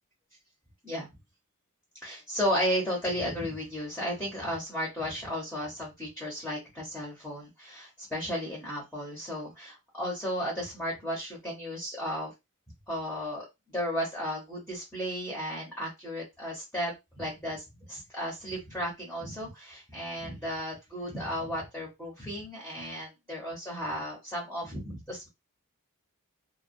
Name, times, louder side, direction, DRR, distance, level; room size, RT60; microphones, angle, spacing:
voice 1, 2.0-12.3 12.9-25.3, equal, 5° left, -4 dB, 0.9 m, -34 dB
2.3 x 2.2 x 2.6 m, 0.21 s
head